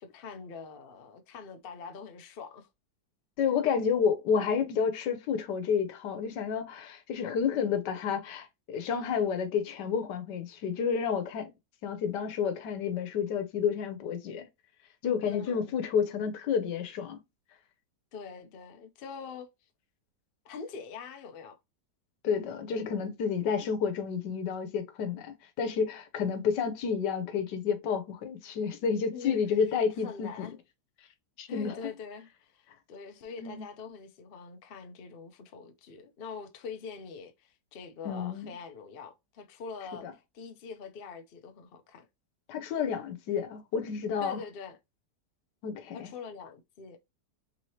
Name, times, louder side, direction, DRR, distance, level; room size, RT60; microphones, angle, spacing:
voice 1, 0.0-2.7 15.3-15.8 18.1-19.5 20.4-21.6 29.1-29.4 29.7-30.6 31.5-40.1 40.3-42.1 44.2-44.8 45.9-47.0, left 5 dB, 65° left, 0.5 m, -44 dB
voice 2, 3.4-11.5 11.8-14.5 15.0-17.2 22.2-30.5 31.4-31.8 33.4-33.6 38.0-38.5 40.0-40.1 42.5-44.4 45.6-46.1, left 6 dB, 80° left, 1.4 m, -30 dB
3.7 x 3.1 x 2.7 m
omnidirectional pair, 1.8 m